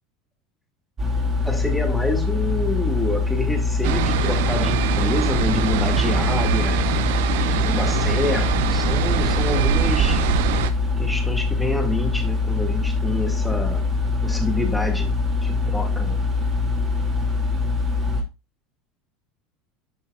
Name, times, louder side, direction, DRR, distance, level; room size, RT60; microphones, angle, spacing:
sound 1, 1.0-18.2, left 3 dB, 25° right, 2.5 m, -23 dB
voice 1, 1.4-6.8 7.5-10.2 11.0-13.9 14.2-15.1 15.4-16.2, left 2 dB, 5° left, 2.0 m, -28 dB
sound 2, 3.8-10.7, right 11 dB, 80° right, 0.8 m, -24 dB
10.0 x 5.6 x 2.3 m
supercardioid pair, 115°, 0 cm